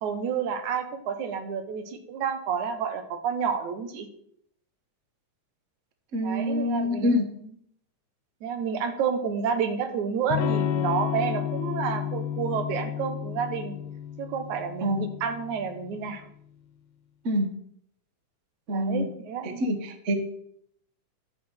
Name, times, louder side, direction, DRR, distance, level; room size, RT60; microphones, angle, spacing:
voice 1, 0.0-4.1 6.2-7.4 8.4-13.8 14.2-16.3 18.7-19.8, right 6 dB, 80° right, 7 dB, 2.6 m, -30 dB
voice 2, 6.1-7.3 14.8-15.0 17.2-17.5 18.7-19.1 19.4-20.2, left 1 dB, 60° right, 7 dB, 0.7 m, -26 dB
Electric guitar / Strum, 10.3-16.0, left 9 dB, 80° left, 2.1 m, -31 dB
11.5 x 6.3 x 5.7 m, 0.69 s
omnidirectional pair, 3.3 m